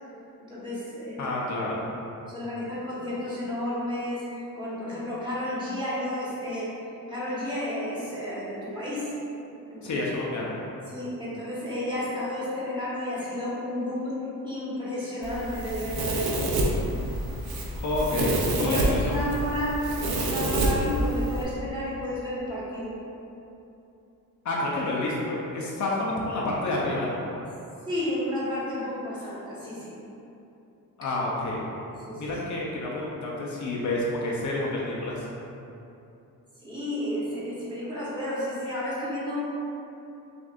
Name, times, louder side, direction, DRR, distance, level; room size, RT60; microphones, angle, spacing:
voice 1, 0.5-1.4 2.3-4.2 4.5-6.7 7.1-9.1 9.7-10.0 10.9-14.1 14.4-16.4 18.6-23.0 27.8-30.0 31.9-32.4 36.6-39.4, left 1 dB, 15° right, -9 dB, 1.2 m, -32 dB
voice 2, 1.2-1.8 9.8-10.6 17.8-19.2 24.4-27.2 31.0-31.6 32.2-35.3, left 2 dB, 55° left, -4 dB, 0.7 m, -29 dB
Domestic sounds home sounds, 15.2-21.4, right 1 dB, 85° right, 0.7 m, -28 dB
6.1 x 2.6 x 2.5 m, 2.8 s
cardioid pair, 115°, 35 cm